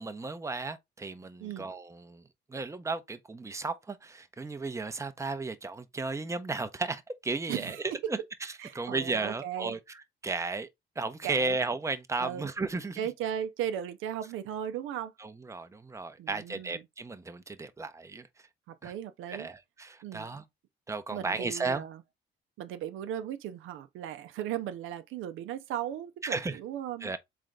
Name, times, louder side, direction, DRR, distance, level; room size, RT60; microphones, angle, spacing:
voice 1, 0.0-2.2 2.5-7.8 8.1-10.7 11.0-13.0 15.2-18.3 18.8-18.9 19.3-20.4 20.9-21.8 26.2-26.6 27.0-27.2, right 3 dB, 15° right, 0.6 m, -34 dB
voice 2, 7.5-8.1 8.6-9.8 11.2-11.6 12.2-12.5 13.0-15.1 16.2-16.8 18.7-19.5 20.0-20.3 21.1-22.0 22.6-27.1, right 10 dB, 90° right, 0.6 m, -37 dB
3.8 x 3.3 x 3.7 m
cardioid pair, 90°, 20 cm